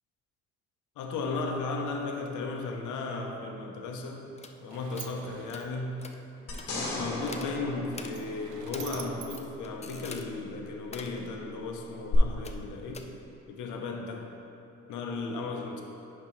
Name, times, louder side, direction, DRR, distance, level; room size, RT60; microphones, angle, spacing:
voice 1, 1.0-4.3 4.6-6.0 6.8-13.0 13.5-14.3 14.9-15.8, left 3 dB, 80° left, 2 dB, 0.9 m, -35 dB
Sliding door, 4.1-10.5, right 8 dB, 70° right, 0.6 m, -49 dB
sound 1, 4.4-4.6 4.9-5.1 5.5-5.7 6.0-6.2 6.5-6.7 7.2-7.5 7.9-8.1 8.7-8.9 9.2-10.3 10.8-11.2 12.4-12.7 12.9-13.0, left 4 dB, 20° left, 0.5 m, -44 dB
sound 2, 6.5-9.0 12.1-12.2, left 3 dB, 50° left, 1.5 m, -36 dB
10.0 x 5.1 x 3.2 m, 2.9 s
cardioid pair, 90°, 30 cm